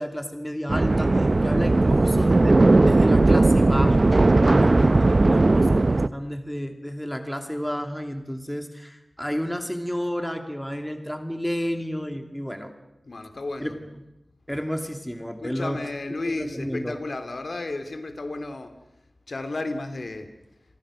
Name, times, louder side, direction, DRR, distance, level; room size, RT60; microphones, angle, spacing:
voice 1, 0.0-4.1 4.5-12.7 13.6-13.8 14.5-15.8 16.3-17.0, equal, 5° left, 6 dB, 2.7 m, -31 dB
sound 1, 0.7-6.1, right 2 dB, 50° right, 0.8 m, -18 dB
voice 2, 1.4-2.0 13.0-13.8 15.4-18.8 19.3-20.3, left 2 dB, 65° left, 8 dB, 2.9 m, -33 dB
30.0 x 23.5 x 6.5 m, 0.92 s
cardioid pair, 45°, 0 cm